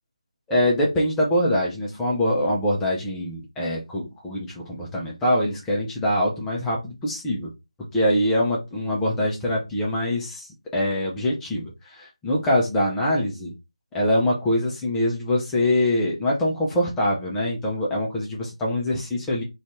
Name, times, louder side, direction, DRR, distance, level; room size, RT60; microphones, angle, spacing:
voice 1, 0.5-7.5 7.9-10.5 10.7-13.5 13.9-19.4, left 1 dB, 5° left, -4 dB, 0.3 m, -24 dB
2.5 x 2.2 x 2.9 m, 0.24 s
figure-of-eight pair, 160°, 4 cm